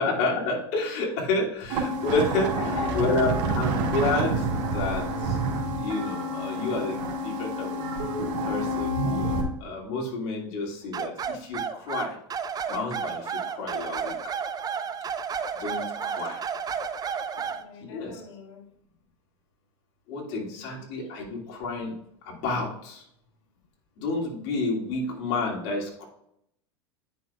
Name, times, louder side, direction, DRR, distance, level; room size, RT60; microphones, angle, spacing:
voice 1, 0.0-2.5 2.9-5.4 5.8-7.8 8.4-12.2 12.7-14.2 15.6-16.4 17.9-18.2 20.1-21.9 22.2-23.1 24.0-26.1, left 3 dB, 60° left, -3 dB, 2.8 m, -30 dB
sound 1, 1.7-9.4, right 1 dB, 60° right, 2.3 m, -28 dB
voice 2, 2.6-3.6 16.0-16.1 17.5-18.6 20.3-20.8, left 5 dB, 80° left, 0 dB, 1.9 m, -39 dB
Hillary Bark, 10.9-17.6, right 6 dB, 25° right, 0.5 m, -32 dB
9.9 x 5.8 x 2.5 m, 0.74 s
hypercardioid pair, 90°, 15 cm